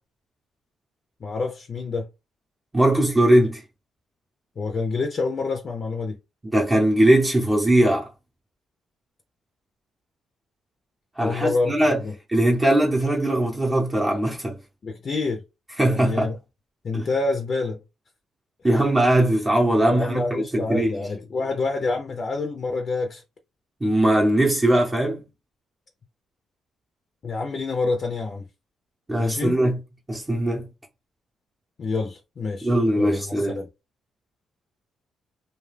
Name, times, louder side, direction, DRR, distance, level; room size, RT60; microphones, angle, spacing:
voice 1, 1.2-2.1 4.6-6.2 11.2-12.1 14.8-15.4 15.9-16.4 16.8-17.8 19.9-23.2 27.2-28.5 29.1-29.6 31.8-33.7, left 3 dB, 45° left, 0.5 m, -27 dB
voice 2, 2.7-3.6 6.5-8.1 11.2-12.0 12.3-14.6 15.8-16.3 16.9-17.1 18.6-20.9 23.8-25.2 29.1-29.8 30.1-30.7 32.6-33.6, right 1 dB, 20° right, 0.7 m, -20 dB
2.3 x 2.3 x 3.3 m
cardioid pair, 90°, 0 cm